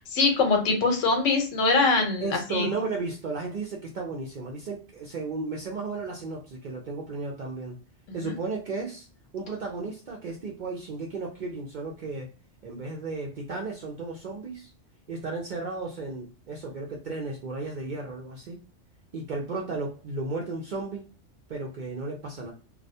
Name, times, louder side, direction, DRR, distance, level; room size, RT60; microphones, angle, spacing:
voice 1, 0.1-2.7 8.2-8.3, left 3 dB, 90° left, 4 dB, 1.1 m, -23 dB
voice 2, 2.2-7.8 8.1-9.1 9.3-12.3 12.6-14.7 15.1-18.6 19.1-21.1 21.5-22.5, right 3 dB, 60° right, -1 dB, 0.5 m, -34 dB
2.3 x 2.1 x 2.7 m, 0.35 s
omnidirectional pair, 1.3 m